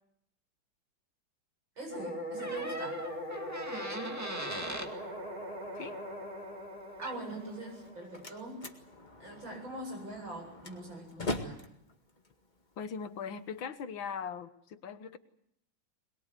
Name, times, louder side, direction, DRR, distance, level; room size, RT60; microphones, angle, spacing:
voice 1, 1.8-3.0 7.0-8.7 9.2-11.6, right 2 dB, 75° right, 3 dB, 8.9 m, -43 dB
sound 1, 1.9-8.9, equal, 25° right, 5.1 m, -41 dB
Door, 2.4-4.9 6.7-6.8 7.0-7.4, right 1 dB, 10° right, 1.9 m, -40 dB
Slam, 7.7-13.6, left 2 dB, 25° left, 2.0 m, -43 dB
voice 2, 12.8-15.2, left 6 dB, 75° left, 10 dB, 2.0 m, -40 dB
22.5 x 22.5 x 8.3 m, 0.74 s
omnidirectional pair, 2.2 m